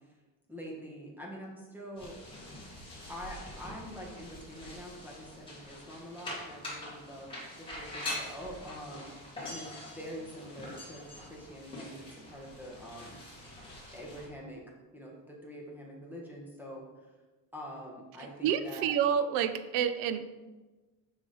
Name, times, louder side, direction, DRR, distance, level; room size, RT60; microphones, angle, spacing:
voice 1, 0.5-2.2 3.1-7.3 7.6-13.2 13.9-14.6 14.9-16.9 17.5-19.0, equal, 5° right, -3 dB, 1.3 m, -45 dB
sound 1, 2.0-14.3, left 1 dB, 15° left, 2.0 m, -44 dB
voice 2, 18.4-20.2, right 8 dB, 80° right, 11 dB, 0.6 m, -28 dB
6.1 x 5.3 x 3.9 m, 1.2 s
cardioid pair, 140°, 36 cm